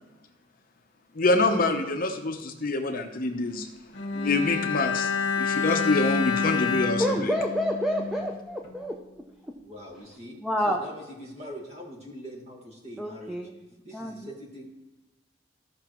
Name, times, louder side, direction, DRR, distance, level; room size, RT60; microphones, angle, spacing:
voice 1, 1.1-3.7 4.1-5.1 5.4-7.3, left 2 dB, 50° left, 5 dB, 0.8 m, -26 dB
Bowed string instrument, 3.9-8.4 8.6-8.8, left 5 dB, 65° left, 1.6 m, -28 dB
voice 2, 7.0-9.0 10.4-10.8 13.0-13.5 13.9-14.2, equal, 5° right, 0 dB, 0.6 m, -28 dB
voice 3, 9.6-13.4 13.8-14.6, equal, 35° right, 0 dB, 1.7 m, -42 dB
15.0 x 5.9 x 3.0 m, 1.0 s
head